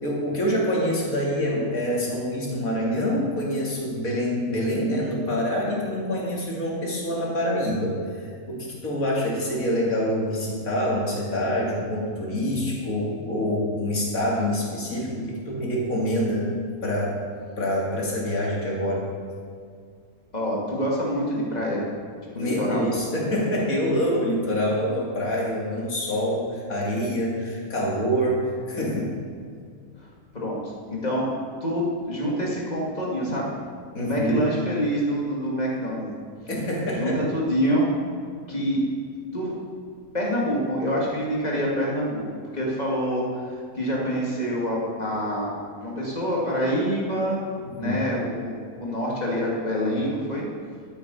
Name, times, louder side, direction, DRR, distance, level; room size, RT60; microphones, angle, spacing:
voice 1, 0.0-16.5 16.8-17.2 17.6-19.1 22.4-29.2 33.9-34.4 36.5-37.2 47.6-48.0, equal, 70° left, -3 dB, 2.9 m, -26 dB
voice 2, 20.3-21.8 22.3-22.9 30.0-31.3 31.6-33.5 34.0-36.1 36.9-37.9 38.5-38.8 39.3-39.5 40.1-42.3 42.5-47.4 47.8-50.4, equal, 25° left, -4 dB, 2.6 m, -26 dB
12.0 x 9.0 x 5.5 m, 2.1 s
omnidirectional pair, 1.6 m